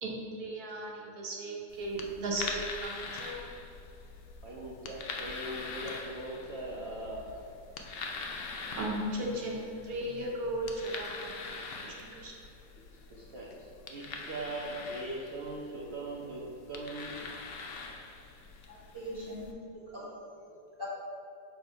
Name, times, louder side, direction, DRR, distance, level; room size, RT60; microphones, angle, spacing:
voice 1, 0.0-3.4 8.8-11.3 12.2-12.3, right 1 dB, 70° right, -2 dB, 1.4 m, -36 dB
sound 1, 1.7-19.5, left 4 dB, 80° left, 0.5 m, -43 dB
voice 2, 4.4-7.4 12.9-17.1, right 1 dB, 50° right, -5 dB, 0.9 m, -40 dB
voice 3, 18.7-20.9, equal, 15° left, -7 dB, 1.6 m, -43 dB
6.2 x 4.6 x 4.6 m, 2.4 s
omnidirectional pair, 1.7 m